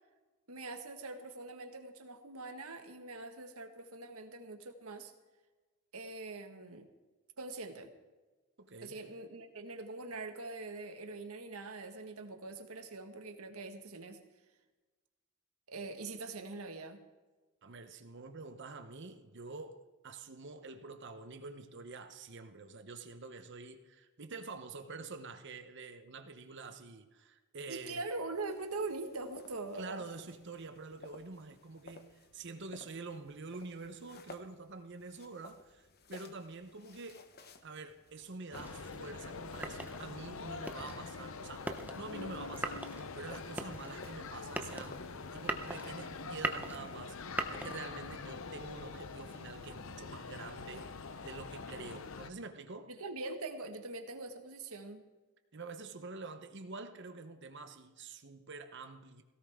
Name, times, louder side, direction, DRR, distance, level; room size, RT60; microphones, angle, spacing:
voice 1, 0.5-5.1 5.9-6.9 7.4-7.9 8.8-14.2 15.7-17.0 27.7-30.0 52.9-55.0, right 3 dB, 80° right, 6 dB, 1.7 m, -43 dB
voice 2, 8.6-9.1 17.6-28.0 29.8-37.2 37.6-41.7 42.0-47.2 47.5-52.9 55.5-59.2, right 3 dB, 55° right, 8 dB, 0.9 m, -47 dB
sound 1, 28.3-46.3, left 3 dB, 45° left, 1.0 m, -57 dB
sound 2, 38.5-52.3, left 4 dB, 65° left, 0.7 m, -45 dB
sound 3, 38.5-48.2, right 2 dB, 5° right, 0.7 m, -42 dB
17.5 x 16.5 x 3.6 m, 1.3 s
head